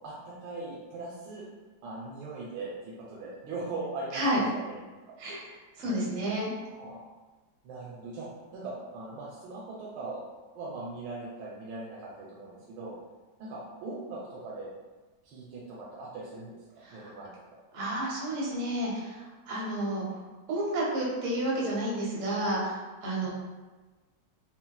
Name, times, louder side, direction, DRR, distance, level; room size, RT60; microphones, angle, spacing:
voice 1, 0.0-1.4 1.8-2.7 3.1-4.6 6.6-7.1 7.6-10.2 10.5-12.9 13.4-14.7 15.2-16.6 16.9-17.3 23.2-23.3, right 3 dB, 85° right, -6 dB, 1.3 m, -40 dB
voice 2, 4.1-4.4 5.2-6.5 16.8-17.1 17.7-23.3, right 1 dB, 60° right, -4 dB, 0.8 m, -31 dB
3.8 x 2.0 x 2.2 m, 1.3 s
omnidirectional pair, 1.9 m